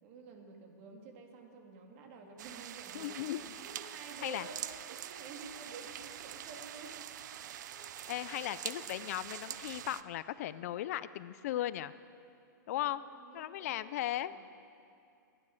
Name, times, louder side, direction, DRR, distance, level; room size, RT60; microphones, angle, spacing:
voice 1, 0.0-7.8 8.3-8.4 12.8-13.9 14.2-14.5, right 4 dB, 40° right, 2 dB, 2.3 m, -51 dB
sound 1, 2.4-10.0, right 11 dB, 60° right, 0.6 m, -45 dB
voice 2, 2.9-3.4 4.2-4.5 8.1-11.9 12.7-13.0 13.3-14.3, left 13 dB, 50° left, 15 dB, 0.4 m, -37 dB
22.0 x 9.9 x 6.5 m, 2.5 s
hypercardioid pair, 155°, 11 cm